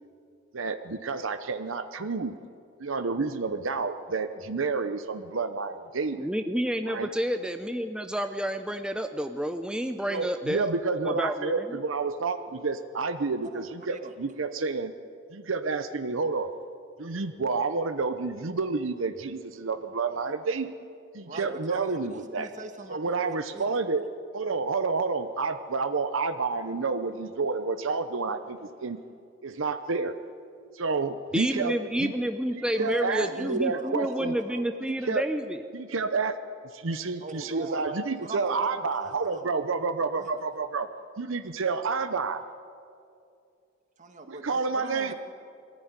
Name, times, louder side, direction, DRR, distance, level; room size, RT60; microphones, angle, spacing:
voice 1, 0.5-2.4 2.8-6.3 6.9-7.1 10.1-14.9 15.3-16.5 17.0-20.7 21.1-22.5 22.9-24.1 24.3-29.0 29.4-30.2 30.7-32.1 32.5-34.3 35.1-35.2 35.7-36.4 36.7-40.9 41.2-42.4 44.3-45.1, right 4 dB, 70° right, 10 dB, 0.8 m, -29 dB
voice 2, 6.2-10.7 11.0-11.8 31.3-35.6, equal, 5° right, 7 dB, 0.6 m, -29 dB
voice 3, 21.3-23.7 32.7-34.6 37.2-39.5 40.1-40.4 44.0-45.1, right 2 dB, 40° right, 5 dB, 1.9 m, -42 dB
21.5 x 14.5 x 9.6 m, 2.5 s
head